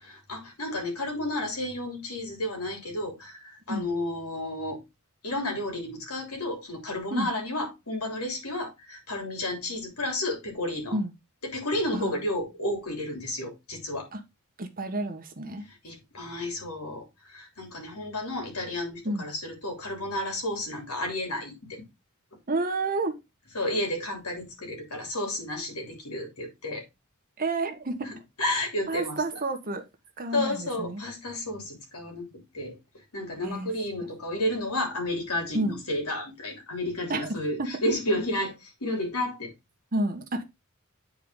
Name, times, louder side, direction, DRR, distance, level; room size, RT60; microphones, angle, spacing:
voice 1, 0.0-4.8 5.2-11.0 11.4-14.1 15.8-17.0 17.3-21.8 23.5-26.8 28.0-29.2 30.3-32.8 33.1-38.5 38.8-39.5, left 1 dB, 85° left, 3.3 m, -32 dB
voice 2, 14.6-15.6 19.0-19.3 22.5-23.2 27.4-28.1 28.9-29.8 30.2-31.0 33.4-33.7 34.0-34.1 35.5-35.8 37.1-37.7 39.9-40.4, right 2 dB, 40° right, 1.3 m, -30 dB
8.9 x 4.7 x 3.7 m
head